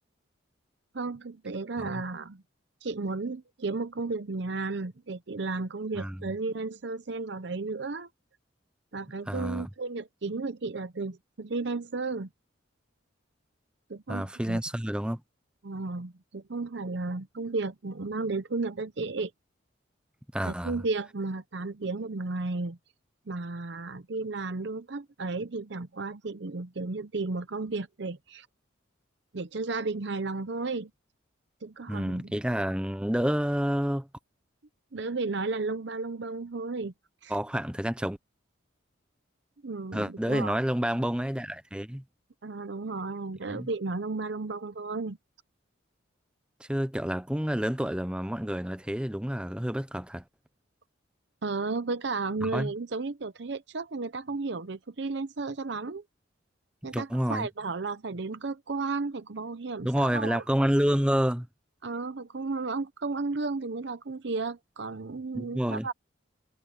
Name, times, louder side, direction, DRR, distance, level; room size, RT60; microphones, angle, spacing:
voice 1, 0.9-2.4 2.8-8.1 8.9-12.3 13.9-14.6 15.6-19.3 20.4-22.8 23.3-28.5 29.3-30.9 31.6-32.3 34.9-36.9 37.2-37.3 39.6-40.6 42.4-45.2 51.4-56.0 56.8-60.4 61.8-65.9, right 3 dB, 60° right, 0.7 m, -33 dB
voice 2, 5.9-6.3 9.3-9.7 14.1-15.2 20.3-20.8 31.9-34.1 37.3-38.2 39.9-42.0 43.5-43.7 46.6-50.2 52.4-52.7 56.9-57.5 59.8-61.5 65.3-65.9, equal, 5° right, 0.7 m, -29 dB
head